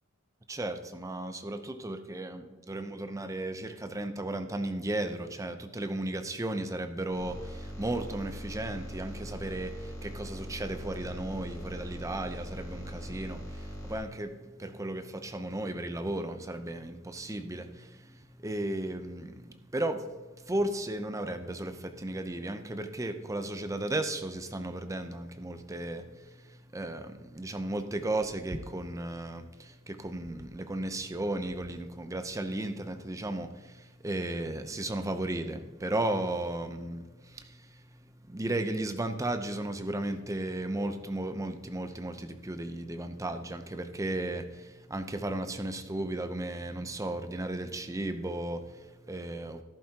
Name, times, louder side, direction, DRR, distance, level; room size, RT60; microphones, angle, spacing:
voice 1, 0.5-49.6, right 1 dB, 15° right, 8 dB, 0.6 m, -35 dB
sound 1, 7.1-14.0, equal, 15° left, 3.1 m, -41 dB
13.5 x 11.0 x 2.9 m, 1.2 s
head